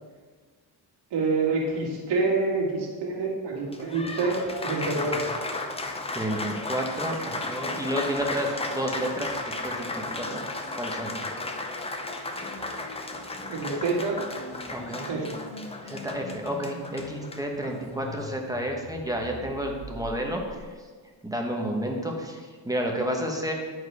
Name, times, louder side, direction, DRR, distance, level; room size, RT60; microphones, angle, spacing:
voice 1, 1.1-5.3 13.5-14.2 15.1-15.4, right 3 dB, 70° right, -2 dB, 2.2 m, -27 dB
Applause, 3.6-18.3, left 2 dB, 15° left, 0.7 m, -34 dB
voice 2, 6.1-10.4 10.8-11.2 14.6-15.1 15.8-20.7 21.2-23.5, equal, 10° right, 0 dB, 1.1 m, -31 dB
sound 1, 10.7-20.8, left 3 dB, 55° left, 1.5 m, -45 dB
10.5 x 4.7 x 4.7 m, 1.5 s
cardioid pair, 130°, 43 cm